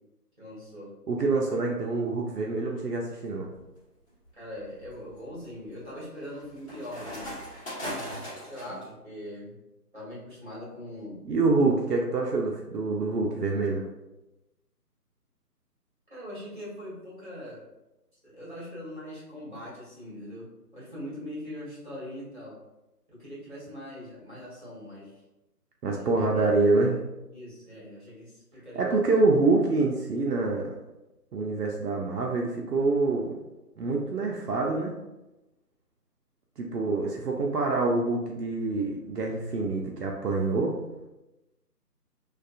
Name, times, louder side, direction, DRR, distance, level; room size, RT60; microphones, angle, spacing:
voice 1, 0.4-0.9 4.3-7.4 8.4-9.6 9.9-11.2 11.5-11.7 16.1-17.6 18.2-22.6 23.1-25.2 25.9-26.5 26.8-27.0 27.3-29.2, left 1 dB, 30° right, -7 dB, 1.1 m, -42 dB
voice 2, 1.1-3.5 11.3-13.9 25.8-27.0 28.8-30.8 31.3-33.4 33.8-35.0 36.6-40.8, right 3 dB, 70° right, 0 dB, 0.5 m, -26 dB
sound 1, 3.3-3.7 4.2-8.9, equal, 40° left, 1.0 m, -40 dB
2.5 x 2.3 x 2.3 m, 0.99 s
figure-of-eight pair, 180°, 48 cm